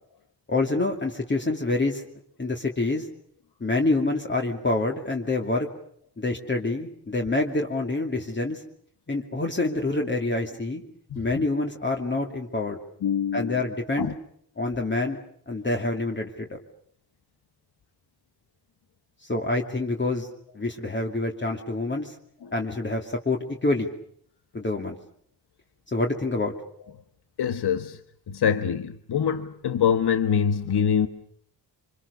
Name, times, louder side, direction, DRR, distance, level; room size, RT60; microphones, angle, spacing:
voice 1, 0.5-2.0 2.4-3.1 3.6-5.7 6.2-8.6 9.1-10.8 11.1-12.8 13.3-14.1 14.6-15.2 15.5-16.6 19.3-20.3 20.5-22.1 22.5-23.9 24.5-25.0 25.9-26.5, left 2 dB, 30° left, 1 dB, 2.7 m, -26 dB
voice 2, 11.1-11.4 13.0-13.6 14.0-14.1 22.4-22.5 27.4-28.0 28.3-31.1, left 8 dB, 80° left, 9 dB, 1.4 m, -25 dB
27.5 x 27.0 x 6.9 m, 0.65 s
wide cardioid pair, 155°, 39 cm